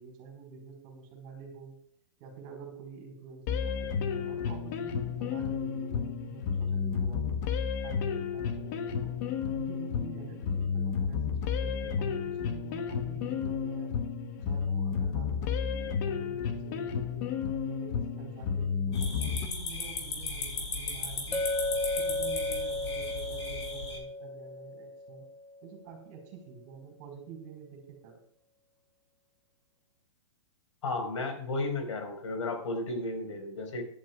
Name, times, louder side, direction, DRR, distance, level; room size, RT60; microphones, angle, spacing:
voice 1, 0.0-1.8 2.2-7.3 7.8-9.1 9.6-13.9 14.4-17.3 17.7-21.4 22.0-25.3 25.6-28.2, right 6 dB, 35° right, 3 dB, 4.6 m, -48 dB
sound 1, 3.5-19.5, left 6 dB, 35° left, 1.1 m, -32 dB
sound 2, 18.9-24.0, left 3 dB, 65° left, 5.0 m, -36 dB
Chink clink, 21.3-25.5, left 2 dB, 5° left, 0.4 m, -34 dB
voice 2, 30.8-33.8, left 2 dB, 85° left, 5 dB, 4.5 m, -33 dB
18.0 x 11.0 x 2.4 m, 0.63 s
hypercardioid pair, 165°, 15 cm